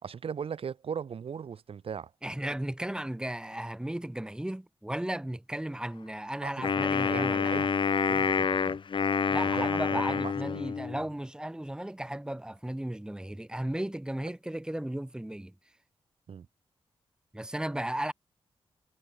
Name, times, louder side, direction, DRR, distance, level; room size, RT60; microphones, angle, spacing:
voice 1, 0.0-2.1 6.4-6.5 6.8-8.8 9.6-10.7 16.3-16.5, right 7 dB, 70° right, 2.5 m, -39 dB
voice 2, 2.2-7.7 9.3-15.5 17.3-18.1, right 1 dB, 10° right, 2.4 m, -35 dB
Wind instrument woodwind instrument, 6.6-11.1, left 6 dB, 55° left, 1.5 m, -28 dB
wide cardioid pair, 95°, 10 cm